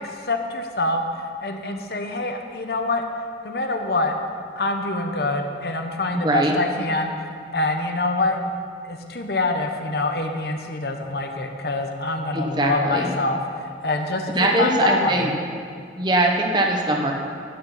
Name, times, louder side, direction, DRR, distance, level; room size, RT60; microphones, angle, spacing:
voice 1, 0.0-3.0 3.4-4.2 4.6-7.1 7.5-8.4 8.8-15.4, left 2 dB, 60° left, 4 dB, 1.1 m, -25 dB
voice 2, 6.1-6.5 12.3-13.1 14.3-15.3 16.0-17.1, right 1 dB, 25° right, 1 dB, 1.3 m, -21 dB
12.5 x 6.7 x 9.1 m, 2.2 s
head